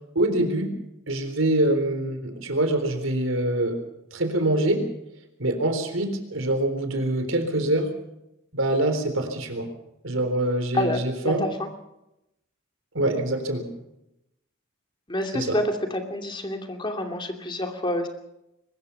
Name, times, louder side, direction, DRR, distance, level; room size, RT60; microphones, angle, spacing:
voice 1, 0.2-0.7 1.1-3.8 4.1-4.9 5.4-7.9 8.5-9.7 10.0-11.5 12.9-13.7 15.3-15.6, right 1 dB, 75° right, 7 dB, 3.9 m, -24 dB
voice 2, 10.7-11.7 15.1-15.6 15.9-18.1, left 1 dB, 25° left, 4 dB, 2.6 m, -28 dB
23.0 x 20.0 x 5.7 m, 0.87 s
head